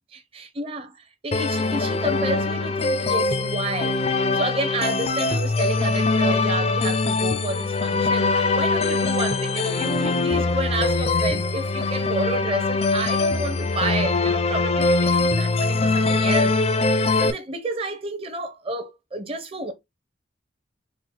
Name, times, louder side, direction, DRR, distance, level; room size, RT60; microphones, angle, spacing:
voice 1, 0.1-1.0 1.2-16.6 16.9-19.7, right 2 dB, 30° right, 0.7 m, -30 dB
sound 1, 1.3-17.3, left 3 dB, 35° left, 0.4 m, -22 dB
4.4 x 2.0 x 3.8 m
head